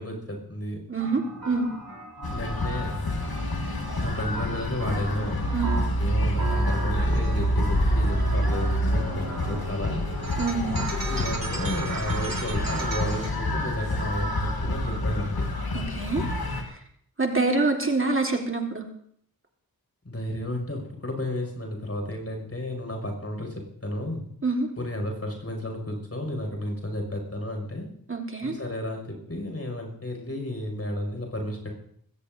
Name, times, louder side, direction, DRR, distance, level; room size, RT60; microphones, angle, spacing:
voice 1, 0.0-0.8 2.3-3.1 4.0-5.4 6.0-10.1 10.6-15.5 20.0-24.2 24.8-27.9 28.4-31.7, left 1 dB, 40° left, 2 dB, 5.9 m, -32 dB
voice 2, 0.9-1.7 5.5-5.7 10.4-10.8 15.7-16.3 17.2-18.8 24.4-24.7 28.1-28.5, right 3 dB, 35° right, 2 dB, 1.8 m, -26 dB
sound 1, 1.0-13.3, right 2 dB, 70° right, 3.6 m, -37 dB
sound 2, 2.2-16.6, left 1 dB, 85° left, 2.0 m, -27 dB
21.0 x 16.5 x 2.7 m, 0.65 s
wide cardioid pair, 55°, 36 cm